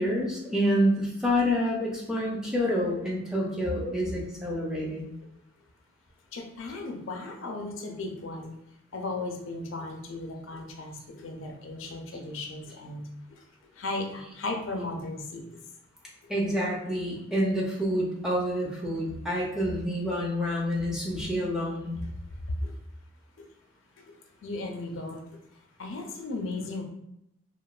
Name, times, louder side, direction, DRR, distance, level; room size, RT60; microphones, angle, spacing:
voice 1, 0.0-5.1 16.3-22.0, equal, 5° right, -4 dB, 0.4 m, -28 dB
voice 2, 6.3-8.6 8.9-13.0 13.8-15.6 22.0-22.1 22.6-22.7 24.4-25.2 25.8-26.8, left 2 dB, 75° left, 2 dB, 0.4 m, -36 dB
3.0 x 2.1 x 2.3 m, 0.80 s
head